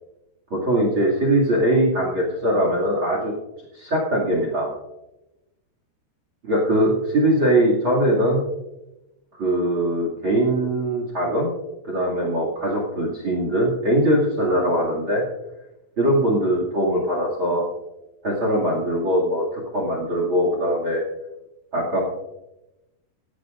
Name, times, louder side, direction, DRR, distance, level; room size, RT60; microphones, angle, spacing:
voice 1, 0.5-3.3 3.7-4.7 6.4-8.4 9.4-11.5 11.9-15.2 16.0-17.6 18.2-21.0 21.7-22.0, right 1 dB, 35° right, 1 dB, 2.1 m, -21 dB
17.0 x 15.0 x 2.6 m, 0.95 s
omnidirectional pair, 5.9 m